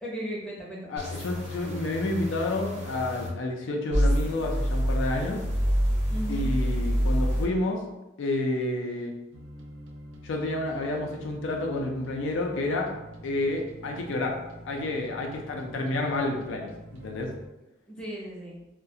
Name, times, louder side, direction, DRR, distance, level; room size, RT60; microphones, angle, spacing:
voice 1, 0.0-0.9 6.1-6.5 17.9-18.6, right 1 dB, 5° left, -5 dB, 0.6 m, -36 dB
voice 2, 0.9-5.4 6.3-7.8 8.2-9.1 10.2-12.9 13.2-14.4 14.6-17.3, left 2 dB, 80° left, 2 dB, 0.4 m, -30 dB
sound 1, 1.0-3.3 3.9-7.4, equal, 35° right, 0.7 m, -27 dB
sound 2, 9.3-17.5, right 1 dB, 75° right, 0.4 m, -45 dB
2.3 x 2.1 x 2.6 m, 0.97 s
head